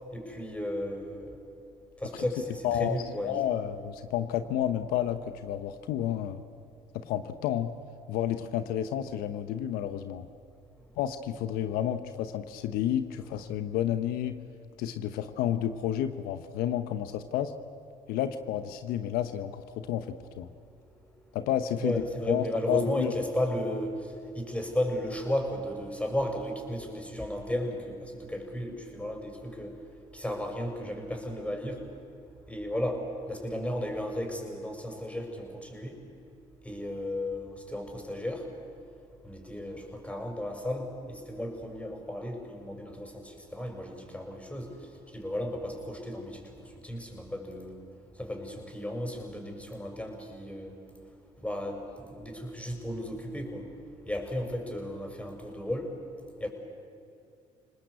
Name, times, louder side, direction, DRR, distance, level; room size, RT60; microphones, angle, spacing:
voice 1, 0.1-1.4 2.0-3.4 21.8-29.8 30.1-31.9 32.5-36.0 36.6-38.5 39.2-47.8 48.2-50.8 51.4-53.7 54.0-56.0 56.4-56.5, left 1 dB, 10° left, 3 dB, 6.5 m, -34 dB
voice 2, 2.6-3.0 3.2-6.4 6.9-7.7 8.1-10.3 11.0-14.4 14.8-17.5 18.1-20.1 20.4-20.5 21.3-23.1, left 11 dB, 75° left, 10 dB, 1.0 m, -30 dB
29.0 x 19.5 x 8.3 m, 2.5 s
supercardioid pair, 65°, 15 cm